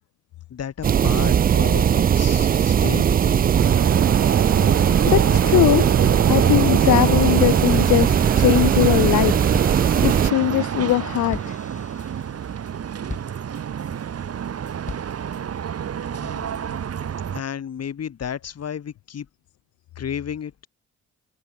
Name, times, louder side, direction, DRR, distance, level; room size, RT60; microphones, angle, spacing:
voice 1, 0.5-3.5 16.2-16.5 17.3-19.3 20.0-20.7, left 8 dB, 55° left, 7.9 m, -32 dB
sound 1, 0.8-10.3, right 8 dB, 30° right, 0.4 m, -19 dB
sound 2, 3.6-17.4, right 8 dB, 55° right, 3.3 m, -27 dB
voice 2, 5.1-5.9 6.3-11.6, left 16 dB, 75° left, 0.7 m, -21 dB
sound 3, 10.4-14.0 14.4-15.4, left 3 dB, 25° left, 4.5 m, -40 dB
cardioid pair, 90°, 30 cm